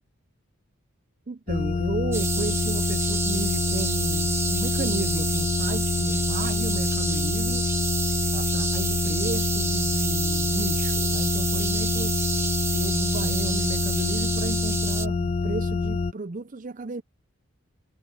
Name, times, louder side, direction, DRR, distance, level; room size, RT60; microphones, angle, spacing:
voice 1, 1.3-7.7 8.3-12.2 12.7-17.0, right 3 dB, 40° right, 0.6 m, -33 dB
sound 1, 1.5-16.1, left 4 dB, 30° left, 0.3 m, -26 dB
sound 2, 2.1-15.1, right 4 dB, 10° right, 1.4 m, -29 dB
head